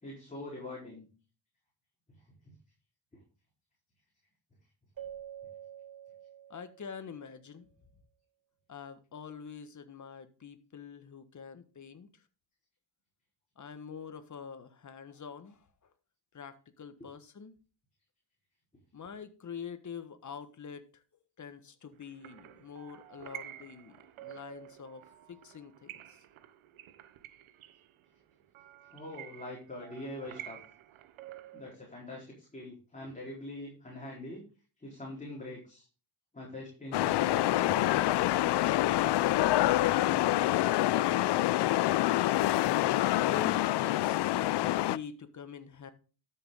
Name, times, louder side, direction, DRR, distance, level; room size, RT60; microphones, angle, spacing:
voice 1, 0.0-1.1 28.9-30.6 31.5-34.4 34.8-35.9 36.3-38.4, left 1 dB, 15° left, -4 dB, 4.1 m, -43 dB
Keyboard (musical), 5.0-7.4, right 10 dB, 45° right, 4.4 m, -47 dB
voice 2, 6.5-7.7 8.7-12.2 13.6-15.9 16.3-17.5 18.9-25.0 25.3-26.2 43.2-45.9, left 6 dB, 35° left, 10 dB, 1.5 m, -45 dB
sound 1, 22.0-31.7, right 12 dB, 90° right, 1.1 m, -50 dB
sound 2, 36.9-45.0, left 15 dB, 60° left, 0.5 m, -26 dB
12.5 x 7.0 x 3.8 m, 0.36 s
cardioid pair, 110°, 48 cm